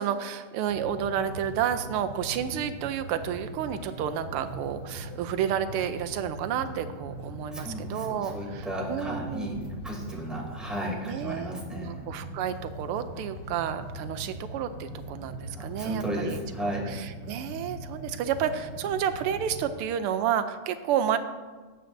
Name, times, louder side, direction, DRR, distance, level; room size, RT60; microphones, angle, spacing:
voice 1, 0.0-9.6 11.0-16.4 16.6-21.2, right 9 dB, 85° right, 9 dB, 1.5 m, -31 dB
sound 1, 0.7-19.7, right 1 dB, 70° right, 3.5 m, -41 dB
voice 2, 7.5-9.5 9.8-12.0 15.5-16.9, right 1 dB, ahead, -3 dB, 2.5 m, -34 dB
19.5 x 7.9 x 2.6 m, 1.4 s
omnidirectional pair, 2.4 m